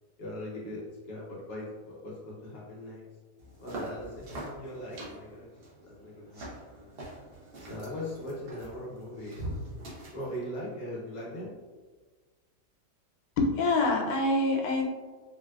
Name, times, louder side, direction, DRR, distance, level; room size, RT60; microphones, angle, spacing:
voice 1, 0.2-3.0 3.6-5.6 5.8-6.4 6.7-7.0 7.6-9.5 10.1-11.6, left 1 dB, 60° left, -5 dB, 1.1 m, -40 dB
sound 1, 3.4-10.4, right 1 dB, 70° right, 0.5 m, -43 dB
voice 2, 13.4-14.9, left 2 dB, 85° left, 0 dB, 1.3 m, -25 dB
4.0 x 2.2 x 2.3 m, 1.4 s
omnidirectional pair, 1.9 m